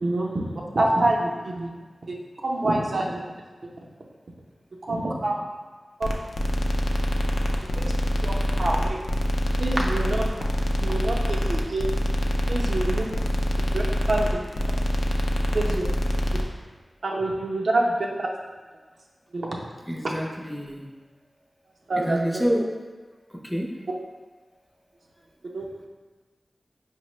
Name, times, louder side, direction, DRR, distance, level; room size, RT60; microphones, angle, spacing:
voice 1, 0.0-1.7 2.1-2.2 2.4-3.2 4.9-5.4 6.0-6.1 7.8-7.9 8.2-9.0 9.6-10.3 10.8-11.9 12.5-13.1 13.7-14.4 15.5-15.9 17.0-18.3 19.3-19.5 21.9-22.3 25.5-25.6, right 2 dB, 75° right, -1 dB, 0.5 m, -26 dB
sound 1, 6.0-16.4, equal, 85° left, 0.3 m, -25 dB
voice 2, 19.9-20.9 22.0-22.7 23.4-23.7, equal, ahead, -1 dB, 0.4 m, -27 dB
4.7 x 2.0 x 3.0 m, 1.3 s
wide cardioid pair, 80°, 0 cm